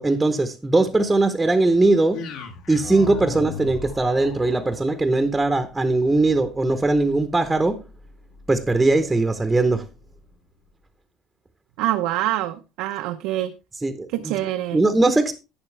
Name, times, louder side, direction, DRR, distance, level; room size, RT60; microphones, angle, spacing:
voice 1, 0.0-2.2 2.7-7.8 8.5-9.9 13.8-14.3 14.7-15.3, right 2 dB, 10° right, 0.8 m, -20 dB
sound 1, 2.1-10.3, left 4 dB, 70° left, 2.3 m, -39 dB
voice 2, 11.8-13.5 14.1-14.8, right 14 dB, 85° right, 0.8 m, -25 dB
12.0 x 9.1 x 3.3 m
cardioid pair, 160°, 0 cm